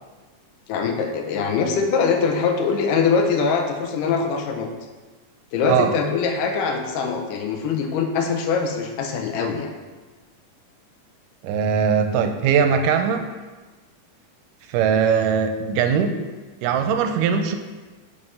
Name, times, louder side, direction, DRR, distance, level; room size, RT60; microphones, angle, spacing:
voice 1, 0.7-4.7 5.5-9.7, left 5 dB, 80° left, 3 dB, 2.3 m, -23 dB
voice 2, 11.4-13.3 14.7-16.2 16.6-17.6, right 7 dB, 85° right, 7 dB, 2.2 m, -20 dB
5.6 x 4.9 x 5.4 m, 1.3 s
omnidirectional pair, 3.7 m